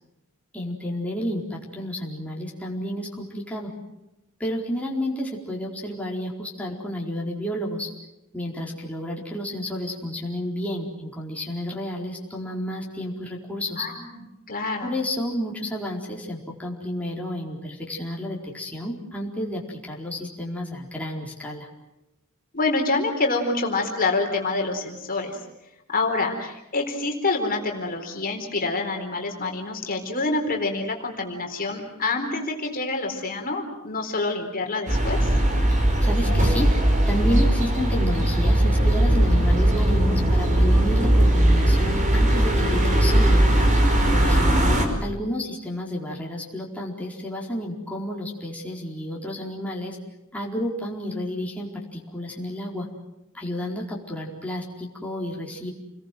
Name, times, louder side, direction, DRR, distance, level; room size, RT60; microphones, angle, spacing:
voice 1, 0.5-3.7 4.4-7.9 8.3-13.9 14.8-21.7 36.0-36.7 37.1-43.4 44.1-50.0 50.3-52.9 53.3-55.7, equal, 5° left, -3 dB, 4.4 m, -31 dB
voice 2, 13.8-14.2 14.5-15.0 22.5-25.4 25.9-35.3 44.2-44.8, left 3 dB, 40° left, 2 dB, 4.2 m, -27 dB
sound 1, 34.9-44.8, right 1 dB, 35° right, 5.1 m, -19 dB
29.5 x 21.5 x 7.7 m, 0.92 s
head